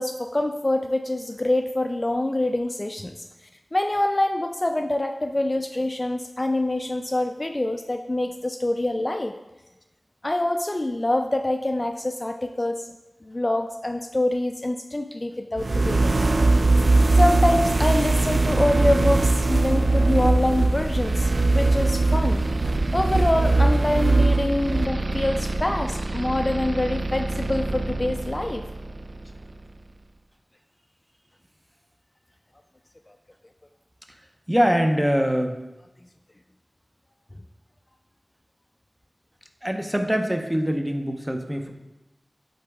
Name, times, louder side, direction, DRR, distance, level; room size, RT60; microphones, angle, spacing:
voice 1, 0.0-3.1 3.7-9.3 10.2-12.8 13.2-16.2 16.5-16.6 17.1-22.4 22.9-28.7, left 1 dB, 35° left, 5 dB, 0.3 m, -25 dB
sound 1, 15.6-29.4, right 2 dB, 70° right, 0.3 m, -21 dB
voice 2, 34.5-35.6 39.6-41.7, equal, 10° right, 4 dB, 0.7 m, -23 dB
8.0 x 3.9 x 3.5 m, 1.0 s
wide cardioid pair, 60°, 0 cm